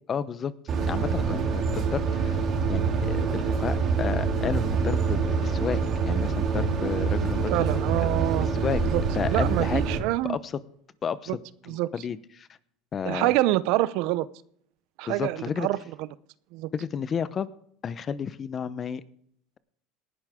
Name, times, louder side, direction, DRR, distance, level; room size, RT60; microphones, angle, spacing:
voice 1, 0.1-0.5 0.9-2.4 2.7-7.9 8.1-8.8 9.1-9.8 10.3-10.5 11.0-11.3 11.7-12.5 12.9-13.3 15.1-15.7 16.7-17.5 17.8-19.0, left 7 dB, 30° left, 16 dB, 0.8 m, -32 dB
sound 1, 0.7-10.0, right 5 dB, 40° right, 3.1 m, -26 dB
voice 2, 7.5-8.5 8.8-9.0 9.3-10.4 11.3-11.4 11.7-11.9 13.0-14.3 15.0-15.8 16.5-16.7, right 17 dB, 65° right, 18 dB, 0.6 m, -26 dB
18.5 x 11.5 x 3.7 m, 0.67 s
supercardioid pair, 120°, 0 cm